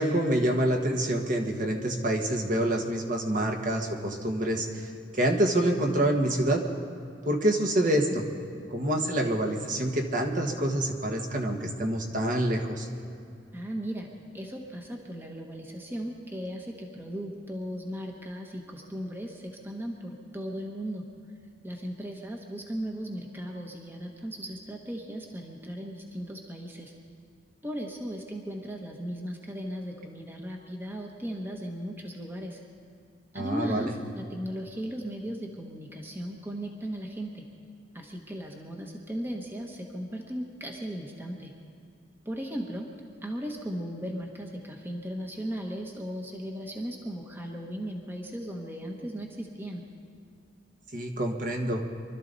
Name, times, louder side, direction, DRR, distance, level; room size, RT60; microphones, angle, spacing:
voice 1, 0.0-6.6 7.2-8.2 8.7-12.9 33.3-33.9 50.9-51.8, right 1 dB, 45° right, 2 dB, 1.6 m, -27 dB
voice 2, 13.5-14.1 14.3-21.0 21.6-26.9 27.6-32.6 33.3-33.9 34.2-37.4 37.9-41.5 42.2-42.9 43.2-49.8, equal, 10° right, 1 dB, 1.2 m, -37 dB
24.0 x 13.0 x 4.1 m, 2.5 s
head